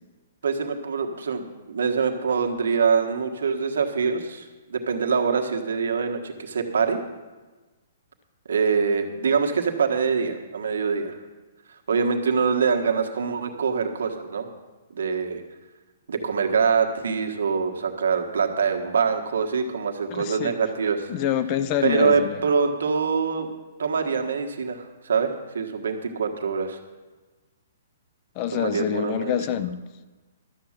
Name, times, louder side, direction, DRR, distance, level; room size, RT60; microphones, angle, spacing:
voice 1, 0.4-7.0 8.5-11.2 11.9-14.5 14.9-15.4 16.1-21.1 21.8-23.5 23.8-26.8 28.5-29.4, right 5 dB, 85° right, 4 dB, 1.5 m, -24 dB
voice 2, 20.1-20.6 21.1-22.4 28.4-29.8, left 10 dB, 25° left, 13 dB, 0.5 m, -26 dB
12.5 x 7.6 x 7.4 m, 1.2 s
hypercardioid pair, 170°, 0 cm